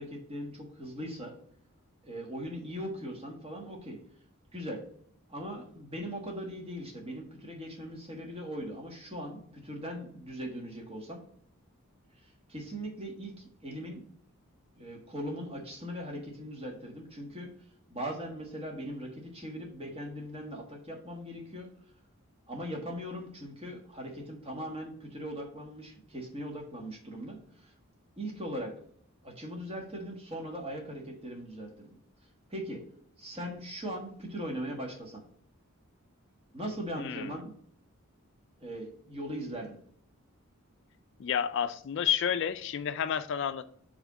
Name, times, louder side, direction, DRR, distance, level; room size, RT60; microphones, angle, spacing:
voice 1, 0.0-1.4 2.0-4.0 4.5-4.8 5.3-11.2 12.2-14.0 14.8-17.5 17.9-21.7 22.5-27.7 28.2-28.7 29.2-31.9 32.5-32.8 33.2-35.2 36.5-37.5 38.6-39.8, equal, 25° right, 0 dB, 1.4 m, -40 dB
voice 2, 37.0-37.3 41.2-43.6, left 8 dB, 55° left, 11 dB, 0.3 m, -30 dB
4.9 x 3.5 x 5.6 m, 0.63 s
head